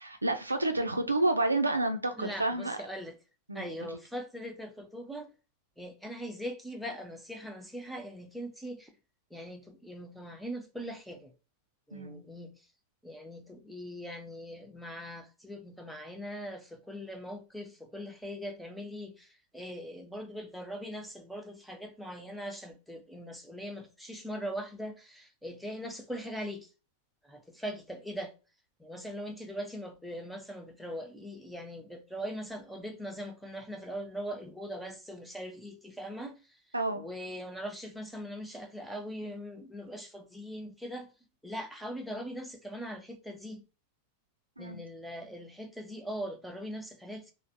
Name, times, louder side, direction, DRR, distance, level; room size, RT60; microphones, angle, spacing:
voice 1, 0.2-2.8 3.5-4.0 11.9-12.2 36.7-37.1 44.6-44.8, right 2 dB, 80° right, 0.4 m, -30 dB
voice 2, 2.2-3.2 3.5-5.3 5.8-8.9 9.3-11.3 11.9-12.5 13.0-26.7 27.2-28.3 28.8-36.6 36.9-41.1 41.4-43.6 44.6-47.3, equal, ahead, 0.5 m, -41 dB
3.2 x 2.1 x 2.6 m
figure-of-eight pair, 90°, 0 cm